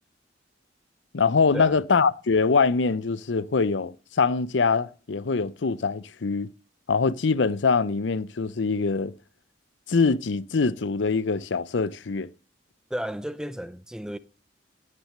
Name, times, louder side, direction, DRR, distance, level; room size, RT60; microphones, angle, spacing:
voice 1, 1.1-6.5 6.9-9.1 9.9-12.3, left 4 dB, 75° left, 0.6 m, -23 dB
voice 2, 12.9-14.2, equal, 5° right, 0.5 m, -33 dB
17.5 x 6.1 x 6.6 m
head